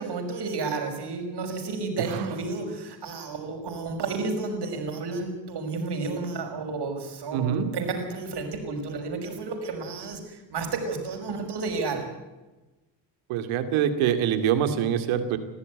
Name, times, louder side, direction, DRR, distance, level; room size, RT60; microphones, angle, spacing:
voice 1, 0.0-12.0, right 3 dB, 55° right, 4 dB, 6.0 m, -31 dB
voice 2, 7.3-7.7 13.3-15.4, right 9 dB, 90° right, 9 dB, 2.5 m, -25 dB
22.5 x 14.5 x 9.4 m, 1.1 s
cardioid pair, 85°, 47 cm